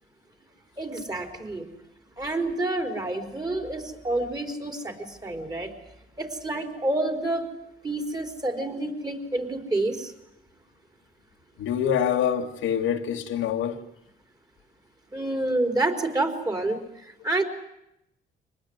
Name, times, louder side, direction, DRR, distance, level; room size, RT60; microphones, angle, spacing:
voice 1, 0.8-1.7 2.2-5.7 6.2-7.5 7.8-10.1 15.1-17.4, right 2 dB, 20° right, 4.3 m, -28 dB
voice 2, 11.6-13.8, left 8 dB, 85° left, 1.9 m, -25 dB
24.5 x 20.0 x 9.6 m
cardioid pair, 90°, 20 cm